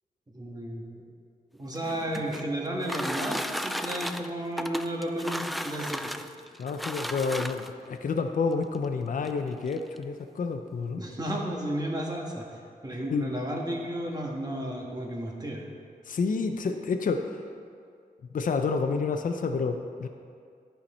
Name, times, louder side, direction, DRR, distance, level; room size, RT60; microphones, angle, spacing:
voice 1, 0.3-1.0 1.6-6.1 11.0-12.4 12.8-15.6, right 1 dB, 25° right, -1 dB, 1.4 m, -33 dB
sound 1, 1.7-7.9 8.7-8.8 9.2-9.3 9.7-10.0, equal, ahead, 0.3 m, -35 dB
voice 2, 6.6-11.0 13.1-13.3 16.1-17.2 18.3-20.1, left 4 dB, 60° left, 5 dB, 0.6 m, -29 dB
11.5 x 5.8 x 4.3 m, 2.2 s
wide cardioid pair, 90°, 15 cm